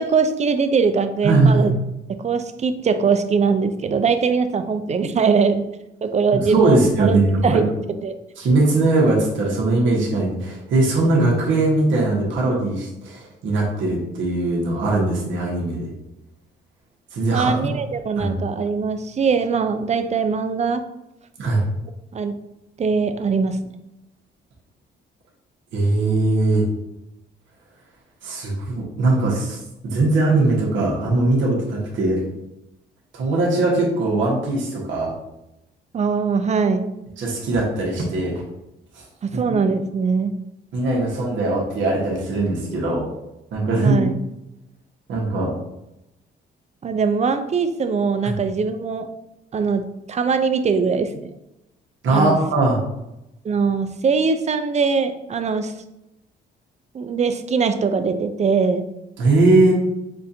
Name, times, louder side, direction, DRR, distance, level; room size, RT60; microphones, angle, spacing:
voice 1, 0.0-1.7 2.1-5.7 6.0-7.6 8.0-8.2 17.3-20.8 22.1-22.4 22.8-23.6 35.9-36.9 39.2-40.4 43.8-44.2 46.8-49.1 49.5-51.3 52.1-52.4 53.4-55.7 56.9-58.9, right 5 dB, 35° right, 9 dB, 0.5 m, -21 dB
voice 2, 1.2-1.7 6.5-7.6 8.4-15.9 17.1-17.7 18.2-18.4 21.4-21.6 25.7-26.6 28.2-32.2 33.1-35.1 37.2-38.4 38.9-39.0 39.3-39.6 40.7-43.1 43.5-44.0 45.1-45.5 48.2-48.3 52.0-52.8 59.2-59.7, right 2 dB, 70° right, -3 dB, 1.4 m, -20 dB
6.3 x 2.5 x 2.8 m, 0.90 s
cardioid pair, 90°, 20 cm